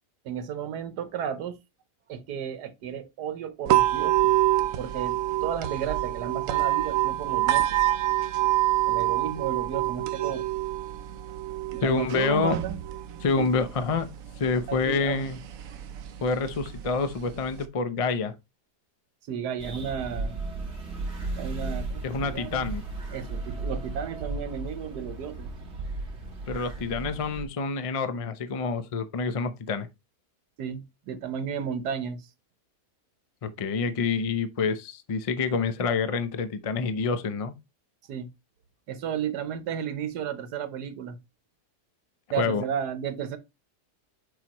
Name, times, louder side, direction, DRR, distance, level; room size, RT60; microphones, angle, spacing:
voice 1, 0.2-1.6 2.1-4.3 4.8-7.6 8.9-10.5 11.7-12.8 13.3-13.5 14.7-15.3 19.3-20.4 21.3-22.7 23.1-25.5 30.6-32.2 38.1-38.3 38.9-41.2 42.3-43.4, right 8 dB, 80° right, 1.4 m, -33 dB
sound 1, 3.7-17.7, right 15 dB, 65° right, 1.0 m, -27 dB
voice 2, 11.8-12.6 13.2-14.1 14.4-15.4 16.2-18.4 22.0-22.8 26.5-29.9 33.4-37.5 42.4-42.6, left 4 dB, 65° left, 0.3 m, -27 dB
sound 2, 19.6-27.4, right 3 dB, 45° right, 1.9 m, -35 dB
7.2 x 4.9 x 3.0 m
omnidirectional pair, 1.7 m